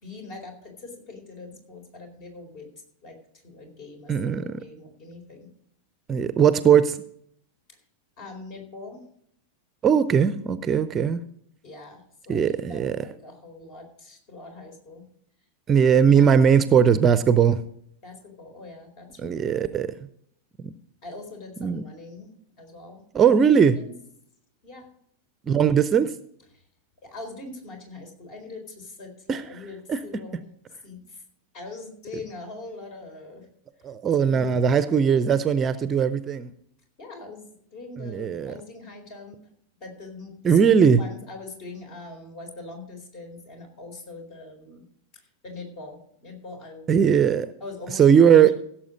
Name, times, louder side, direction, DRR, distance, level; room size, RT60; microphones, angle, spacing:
voice 1, 0.0-2.7 3.0-3.2 3.4-4.1 4.6-5.5 8.2-9.0 11.6-15.0 15.9-16.6 18.0-19.7 21.0-23.3 23.8-23.9 24.6-24.9 27.0-30.4 30.8-31.2 31.5-33.5 34.2-34.9 37.0-39.5 39.8-40.6 41.0-44.8 45.4-46.9 47.6-48.5, left 3 dB, 40° left, 4 dB, 4.2 m, -42 dB
voice 2, 4.1-4.6 6.1-7.0 9.8-11.2 12.3-13.0 15.7-17.6 19.2-19.9 20.6-20.7 21.6-21.8 23.1-23.8 25.5-26.1 29.3-29.4 29.9-30.0 33.8-36.5 38.0-38.5 40.4-41.0 46.9-47.5 47.9-48.5, right 7 dB, 25° right, 14 dB, 0.6 m, -19 dB
16.5 x 7.4 x 5.2 m, 0.68 s
figure-of-eight pair, 90°, 0 cm